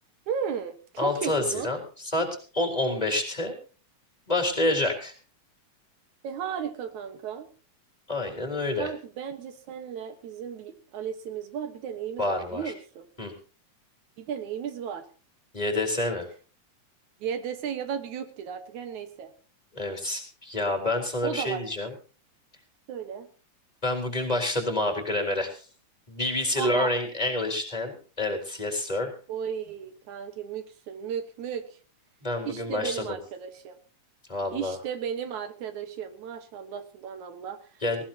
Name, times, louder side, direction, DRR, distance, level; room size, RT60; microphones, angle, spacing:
voice 1, 0.3-1.7 6.2-7.5 8.8-13.1 14.2-15.1 17.2-19.3 21.2-21.6 22.9-23.3 26.6-26.9 29.3-31.8 32.5-33.8 34.5-37.8, right 8 dB, 80° right, 9 dB, 2.8 m, -35 dB
voice 2, 1.0-2.3 2.5-3.5 4.3-5.1 8.1-8.9 12.2-12.7 13.2-13.3 15.5-16.3 19.7-21.9 23.8-25.6 26.1-29.1 32.2-33.2 34.3-34.8 37.8-38.0, left 2 dB, 15° left, 4 dB, 3.8 m, -28 dB
19.5 x 18.0 x 2.9 m, 0.37 s
omnidirectional pair, 3.3 m